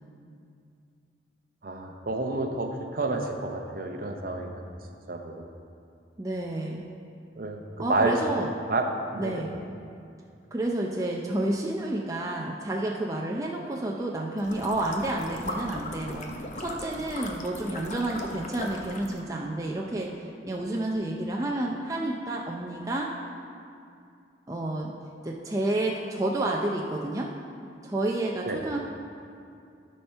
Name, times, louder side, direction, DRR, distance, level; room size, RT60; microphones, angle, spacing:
voice 1, 1.6-4.6 5.1-5.4 7.4-8.9 9.1-9.3 28.4-28.6, right 2 dB, 50° right, 3 dB, 0.8 m, -29 dB
voice 2, 6.2-6.8 7.8-8.5 9.2-9.5 10.5-23.1 24.5-24.9 25.2-27.3 27.8-28.9, right 1 dB, 20° right, -2 dB, 0.5 m, -30 dB
sound 1, 14.4-19.2, left 1 dB, 40° left, 0.7 m, -38 dB
12.0 x 4.4 x 5.5 m, 2.4 s
head